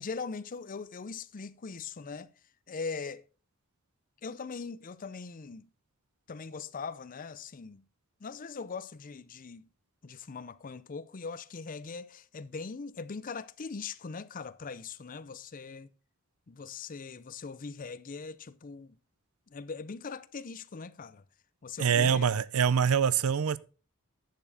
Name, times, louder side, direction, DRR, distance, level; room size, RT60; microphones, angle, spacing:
voice 1, 0.0-2.3 2.7-3.2 4.2-5.7 6.3-7.8 8.2-9.7 10.0-15.9 16.5-19.0 19.5-21.2 21.6-22.2 22.6-22.8, left 4 dB, 40° left, 0.5 m, -41 dB
voice 2, 21.8-23.6, right 7 dB, 90° right, 0.5 m, -25 dB
10.5 x 7.1 x 4.0 m
head